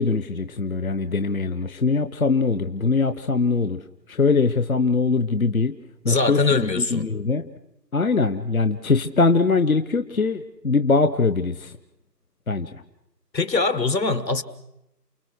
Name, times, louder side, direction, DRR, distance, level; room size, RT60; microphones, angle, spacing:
voice 1, 0.0-3.8 4.1-5.7 6.0-7.5 7.9-11.7 12.5-12.7, left 4 dB, 55° left, 0.9 m, -22 dB
voice 2, 6.1-7.1 13.3-14.4, left 3 dB, 85° left, 1.9 m, -22 dB
29.0 x 21.0 x 6.4 m
figure-of-eight pair, 180°, 49 cm